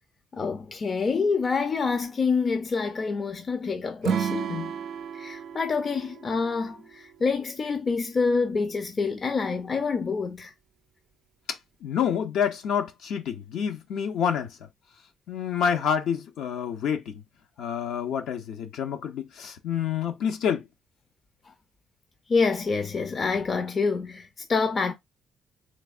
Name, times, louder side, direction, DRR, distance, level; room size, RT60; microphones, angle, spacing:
voice 1, 0.3-4.7 5.1-10.5 22.3-24.9, left 4 dB, 40° left, 0.5 m, -27 dB
Acoustic guitar / Strum, 4.0-7.3, right 7 dB, 70° right, 0.3 m, -32 dB
voice 2, 11.8-14.5 15.3-17.1 17.6-20.6, left 8 dB, 85° left, 0.7 m, -28 dB
3.4 x 3.3 x 2.4 m
cardioid pair, 90°, 0 cm